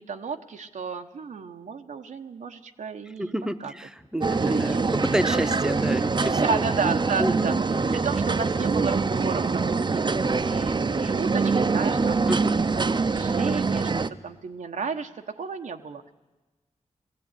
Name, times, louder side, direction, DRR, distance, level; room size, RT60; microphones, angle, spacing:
voice 1, 0.0-3.3 3.6-3.7 4.4-4.9 6.4-7.6 7.9-12.2 12.7-13.9 14.2-16.1, right 5 dB, 85° right, 5 dB, 1.2 m, -33 dB
voice 2, 3.2-6.6 7.2-7.5 12.3-12.5, equal, 5° right, 10 dB, 1.0 m, -29 dB
sound 1, 4.2-14.1, right 4 dB, 40° right, 0.7 m, -24 dB
20.0 x 15.0 x 9.8 m, 1.1 s
wide cardioid pair, 80°, 12 cm